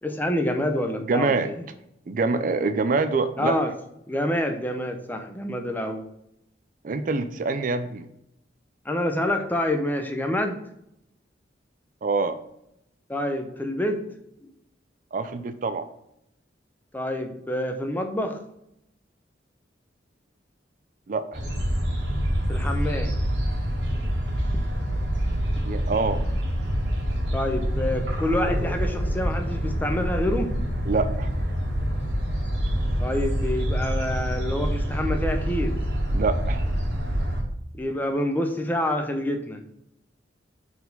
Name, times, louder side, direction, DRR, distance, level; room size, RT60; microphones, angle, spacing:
voice 1, 0.0-1.6 3.4-3.7 4.1-6.0 8.8-10.6 13.1-14.0 14.4-14.5 16.9-18.4 22.5-23.1 24.5-24.6 27.3-30.5 33.0-35.7 37.7-39.6, left 1 dB, 10° left, 5 dB, 0.6 m, -27 dB
voice 2, 1.1-1.5 2.1-3.6 6.8-8.1 12.0-12.4 15.1-15.9 21.1-21.4 25.6-26.2 30.9-31.3 36.1-36.6, right 3 dB, 45° right, 10 dB, 0.4 m, -25 dB
sound 1, 21.3-37.4, equal, 70° right, 1.8 m, -26 dB
4.6 x 4.2 x 5.3 m, 0.80 s
head